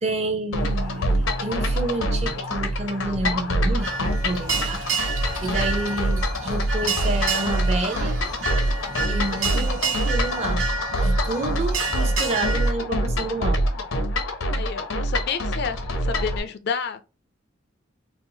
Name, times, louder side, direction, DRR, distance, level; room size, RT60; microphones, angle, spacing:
voice 1, 0.0-4.8 5.4-8.2 9.1-10.6 11.0-13.6, right 2 dB, 35° right, 0.6 m, -29 dB
sound 1, 0.5-16.4, equal, 85° left, 0.7 m, -25 dB
sound 2, 0.6-7.4, right 5 dB, 55° right, 1.3 m, -41 dB
sound 3, 3.8-12.7, right 4 dB, 80° right, 1.0 m, -29 dB
voice 2, 14.6-15.8 16.0-17.0, left 6 dB, 55° left, 0.4 m, -29 dB
4.3 x 2.0 x 2.7 m
head